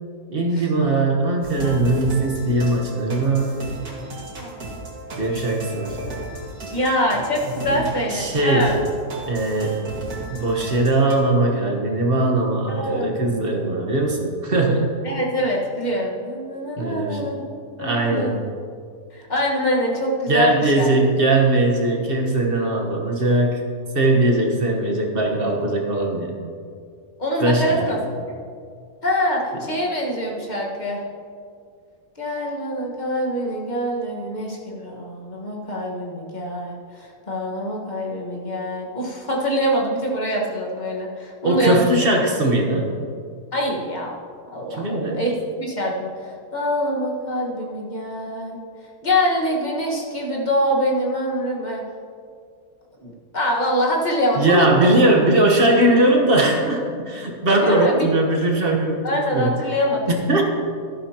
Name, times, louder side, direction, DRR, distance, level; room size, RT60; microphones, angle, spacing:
voice 1, 0.3-3.5 5.2-6.0 7.7-8.7 9.3-9.8 10.3-14.9 16.8-17.2 17.8-18.3 20.3-23.6 23.9-26.3 27.4-28.0 41.4-42.9 44.7-45.2 54.4-59.6 60.1-60.5, right 2 dB, 40° right, 1 dB, 1.3 m, -20 dB
sound 1, 1.4-11.1, right 2 dB, 90° right, 2.4 m, -35 dB
voice 2, 6.7-8.8 12.7-13.5 15.0-17.4 17.8-18.4 19.1-20.9 27.2-28.0 28.3-28.4 29.0-31.0 32.2-41.9 43.5-44.1 44.5-48.6 49.0-51.8 53.0-55.0 57.6-58.2 59.0-60.0, equal, 30° left, -2 dB, 1.6 m, -24 dB
13.0 x 11.5 x 2.9 m, 2.2 s
omnidirectional pair, 1.5 m